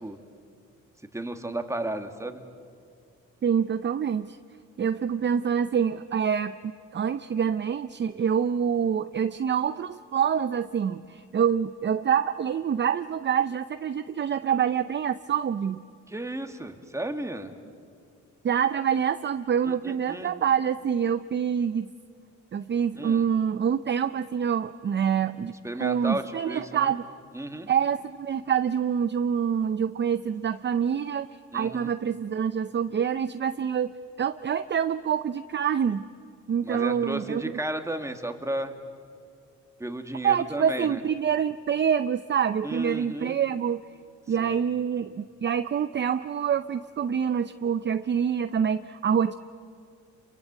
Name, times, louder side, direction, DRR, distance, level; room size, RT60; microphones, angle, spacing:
voice 1, 1.1-2.4 16.1-17.5 19.6-20.3 23.0-23.3 25.6-26.9 27.3-27.7 31.5-31.9 36.6-38.7 39.8-41.0 42.6-43.4 44.4-44.6, right 1 dB, 10° right, 6 dB, 2.2 m, -33 dB
voice 2, 3.4-4.4 4.8-6.6 6.9-15.8 18.4-21.9 22.5-25.5 25.8-27.0 27.7-31.3 31.5-33.9 34.2-36.1 36.5-37.6 40.2-43.8 44.3-49.3, right 8 dB, 35° right, 12 dB, 0.6 m, -26 dB
29.0 x 23.0 x 8.4 m, 2.3 s
cardioid pair, 90°, 30 cm